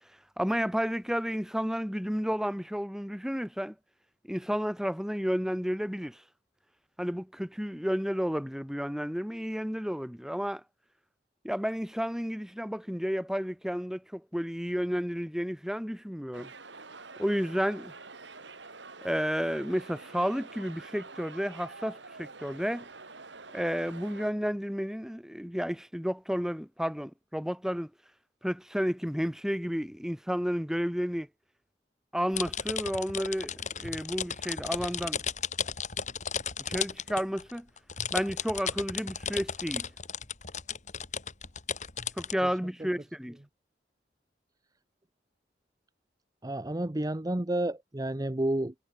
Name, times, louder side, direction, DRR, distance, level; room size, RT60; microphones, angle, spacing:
voice 1, 0.4-3.7 4.3-6.2 7.0-10.6 11.4-16.5 17.2-17.9 19.0-22.9 23.5-27.9 28.4-31.3 32.1-35.2 36.6-37.7 38.1-39.9 42.2-43.4, equal, 5° right, 1.5 m, -31 dB
sound 1, 16.3-24.3, right 3 dB, 85° right, 4.6 m, -47 dB
sound 2, 32.3-42.3, left 7 dB, 40° left, 2.7 m, -35 dB
voice 2, 46.4-48.7, right 1 dB, 20° right, 0.8 m, -30 dB
head